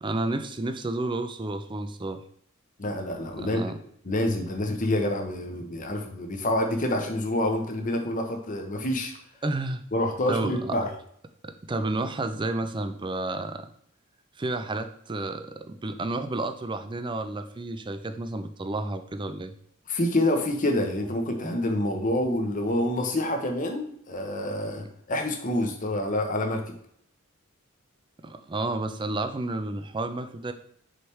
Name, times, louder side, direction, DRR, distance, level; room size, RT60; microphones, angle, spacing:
voice 1, 0.0-2.2 3.4-3.7 9.4-9.8 10.3-10.8 11.4-13.7 14.4-19.5 28.2-30.5, right 2 dB, 20° right, 9 dB, 0.4 m, -31 dB
voice 2, 2.8-3.6 4.0-9.1 9.9-10.9 19.9-26.7, left 1 dB, 40° left, 3 dB, 0.9 m, -27 dB
6.4 x 3.3 x 4.6 m, 0.67 s
head